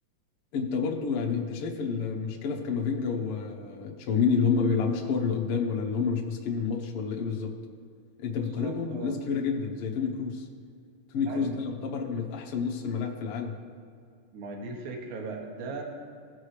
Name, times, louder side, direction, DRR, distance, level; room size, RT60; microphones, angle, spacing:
voice 1, 0.5-7.5 8.2-10.5 11.1-13.6, left 5 dB, 80° left, 0 dB, 1.3 m, -29 dB
voice 2, 8.3-9.2 11.3-11.5 14.3-15.8, right 3 dB, 65° right, 1 dB, 2.4 m, -38 dB
17.0 x 6.2 x 3.2 m, 2.3 s
omnidirectional pair, 4.1 m